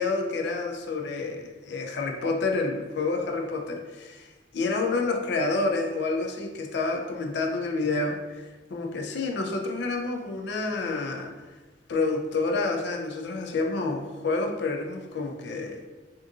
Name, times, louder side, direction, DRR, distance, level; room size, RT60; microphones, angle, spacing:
voice 1, 0.0-4.3 4.5-11.3 11.9-15.9, left 3 dB, 65° left, 2 dB, 0.4 m, -29 dB
3.6 x 2.6 x 2.3 m, 1.2 s
head